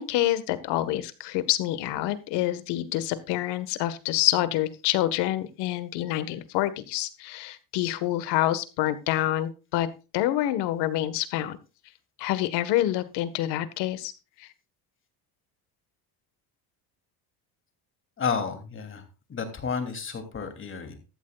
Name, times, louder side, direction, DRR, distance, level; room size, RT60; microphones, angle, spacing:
voice 1, 0.0-9.9 10.1-11.6 12.2-14.1 14.4-14.5, left 14 dB, 80° left, 13 dB, 1.6 m, -27 dB
voice 2, 18.2-19.0 19.3-21.0, left 6 dB, 30° left, 7 dB, 3.1 m, -31 dB
15.0 x 13.5 x 2.4 m, 0.30 s
cardioid pair, 130°, 40 cm